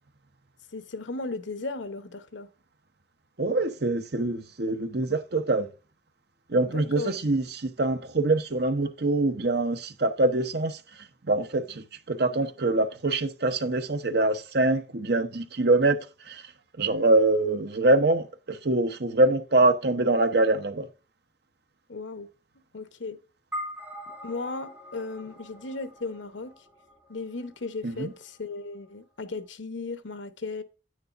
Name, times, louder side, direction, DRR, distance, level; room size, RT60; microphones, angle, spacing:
voice 1, 0.7-2.5 6.6-7.2 21.9-22.3 22.7-23.2 24.2-26.5 27.1-30.6, left 3 dB, 85° left, 1.0 m, -36 dB
voice 2, 3.4-5.7 6.5-10.8 11.3-16.0 16.3-16.4 16.8-20.9 27.8-28.1, right 2 dB, 60° right, 0.9 m, -24 dB
sound 1, 23.5-28.1, equal, 10° right, 3.3 m, -42 dB
9.5 x 9.1 x 2.6 m
head